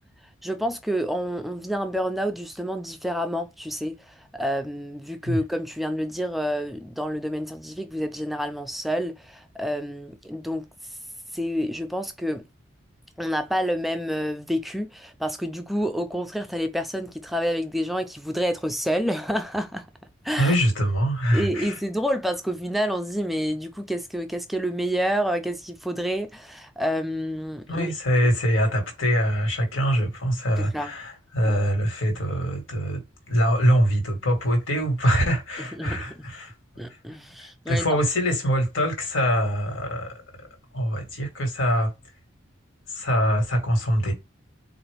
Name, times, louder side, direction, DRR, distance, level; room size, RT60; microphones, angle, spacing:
voice 1, 0.4-11.0 11.3-12.4 13.2-19.9 20.2-20.5 21.3-27.9 30.6-31.0 31.4-31.6 35.6-36.3 36.8-37.9, equal, ahead, 0.3 m, -28 dB
voice 2, 20.4-21.8 27.7-33.0 33.3-36.5 37.4-40.5 40.7-41.9 42.9-44.1, equal, 80° left, 1.5 m, -24 dB
4.1 x 2.4 x 3.3 m
head